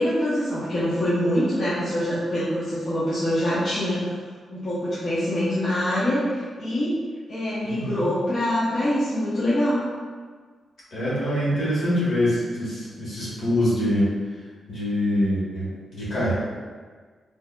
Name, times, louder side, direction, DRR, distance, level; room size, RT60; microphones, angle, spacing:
voice 1, 0.0-4.1 4.5-6.9 7.3-9.9, equal, 40° left, -11 dB, 0.7 m, -24 dB
voice 2, 7.6-8.0 10.9-14.1 14.7-16.3, left 1 dB, 60° left, -9 dB, 1.5 m, -24 dB
4.5 x 2.7 x 2.2 m, 1.5 s
wide cardioid pair, 160°, 0 cm